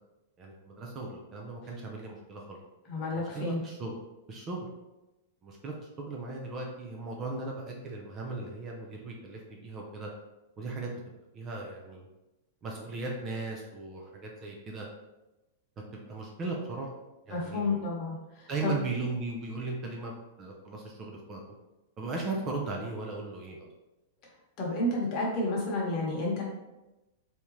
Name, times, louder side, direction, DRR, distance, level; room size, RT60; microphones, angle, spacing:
voice 1, 0.4-2.6 3.1-3.9 4.3-4.7 5.4-10.1 10.6-11.0 11.3-12.1 12.6-14.9 15.9-16.9 17.3-17.8 18.5-21.4 22.0-23.7, right 3 dB, 20° right, -1 dB, 0.5 m, -37 dB
voice 2, 2.9-3.6 17.3-18.7 24.6-26.4, left 2 dB, 35° left, -3 dB, 1.1 m, -31 dB
3.6 x 2.8 x 3.0 m, 1.0 s
supercardioid pair, 160°, 0 cm